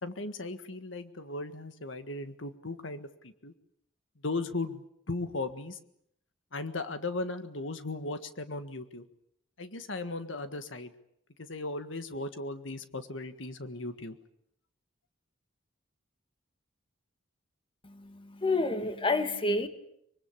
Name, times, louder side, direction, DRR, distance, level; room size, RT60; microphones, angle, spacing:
voice 1, 0.0-3.5 4.2-5.8 6.5-9.0 9.6-10.9 11.4-14.2, left 2 dB, 80° left, 9 dB, 1.6 m, -37 dB
voice 2, 17.8-19.7, left 2 dB, 25° left, 8 dB, 1.9 m, -29 dB
24.5 x 23.5 x 8.4 m, 0.74 s
head